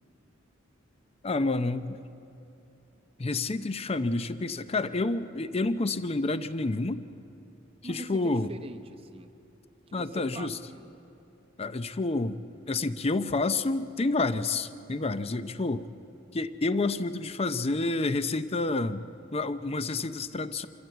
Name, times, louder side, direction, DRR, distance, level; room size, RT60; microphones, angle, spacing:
voice 1, 1.2-2.0 3.2-7.0 7.8-8.5 9.9-10.6 11.6-12.4 12.7-15.9 16.3-19.0 19.3-20.7, left 3 dB, 30° left, 12 dB, 0.6 m, -29 dB
voice 2, 7.8-9.3 9.9-10.9, right 2 dB, 30° right, 5 dB, 0.8 m, -43 dB
26.0 x 14.0 x 7.8 m, 2.8 s
head